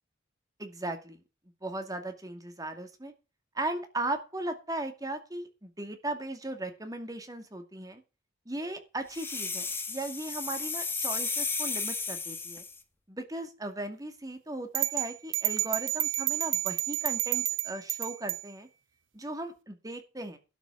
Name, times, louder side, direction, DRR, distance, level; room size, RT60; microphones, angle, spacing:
voice 1, 0.6-1.2 1.6-3.1 3.5-8.0 8.5-12.6 13.1-18.7 19.1-20.4, right 2 dB, 20° right, 7 dB, 2.2 m, -37 dB
sound 1, 9.1-12.8, left 4 dB, 10° left, 1.5 m, -34 dB
sound 2, 14.7-18.4, right 14 dB, 75° right, 0.9 m, -30 dB
12.0 x 6.3 x 7.7 m, 0.31 s
head